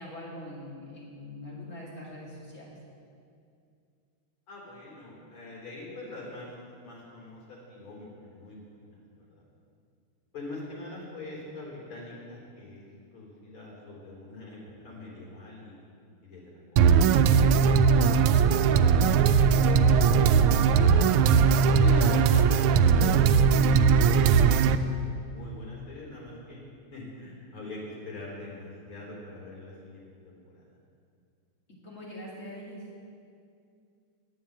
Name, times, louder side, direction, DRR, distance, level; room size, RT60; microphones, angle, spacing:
voice 1, 0.0-2.7 21.6-22.0 31.8-32.8, left 1 dB, 35° left, -5 dB, 2.8 m, -43 dB
voice 2, 4.5-6.5 6.8-9.0 9.3-9.4 10.3-12.8 13.1-15.7 16.2-16.4 17.3-17.6 18.0-18.3 18.8-20.4 20.7-20.9 21.8-24.9 25.3-26.6 26.9-30.6, left 2 dB, 70° left, -4 dB, 5.0 m, -42 dB
sound 1, 16.8-24.8, right 6 dB, 85° right, 1.5 m, -20 dB
11.0 x 9.3 x 8.9 m, 2.4 s
omnidirectional pair, 2.4 m